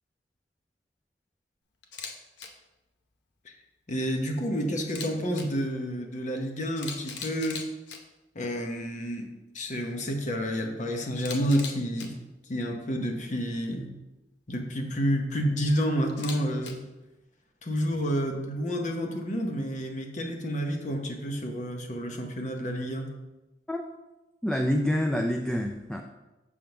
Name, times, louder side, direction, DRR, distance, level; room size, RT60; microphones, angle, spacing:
Camera, 1.8-2.1 2.4-2.5 4.8-5.4 6.4-6.5 6.8-8.0 11.2-12.1 16.1-16.7, left 5 dB, 70° left, 0.8 m, -39 dB
voice 1, 3.9-7.6 8.3-9.3 9.5-12.1 12.5-13.9 14.5-16.8 17.6-23.1, equal, 45° left, 3 dB, 0.9 m, -29 dB
voice 2, 24.4-26.0, equal, 5° left, 3 dB, 0.3 m, -27 dB
6.4 x 3.6 x 5.8 m, 1.0 s
head